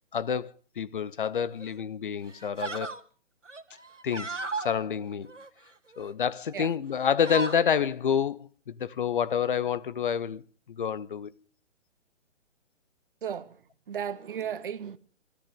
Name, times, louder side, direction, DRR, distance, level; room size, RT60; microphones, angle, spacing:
voice 1, 0.1-3.0 4.0-5.3 6.0-10.4 10.7-11.3, left 7 dB, 45° left, 0.8 m, -28 dB
sound 1, 1.6-1.8 2.3-3.0 3.5-4.7 5.3-6.1 6.5-6.8 7.0-7.7, right 3 dB, 80° right, 1.7 m, -36 dB
voice 2, 13.2-15.0, right 8 dB, 45° right, 1.2 m, -35 dB
29.0 x 13.5 x 3.7 m
figure-of-eight pair, 130°, 36 cm